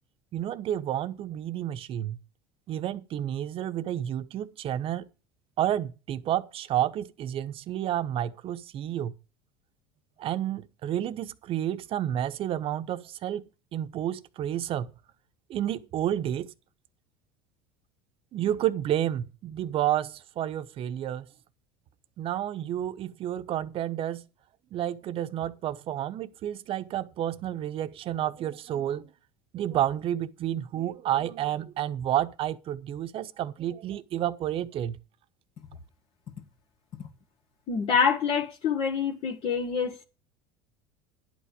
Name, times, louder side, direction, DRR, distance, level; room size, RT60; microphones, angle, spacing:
voice 1, 0.3-2.2 2.7-5.1 5.6-9.1 10.2-14.9 15.5-16.5 18.3-21.3 22.2-24.3 24.7-29.1 29.5-35.0, right 11 dB, 50° right, 1.0 m, -30 dB
voice 2, 37.7-40.0, left 6 dB, 50° left, 1.8 m, -26 dB
11.0 x 8.5 x 5.0 m
supercardioid pair, 95°, 12 cm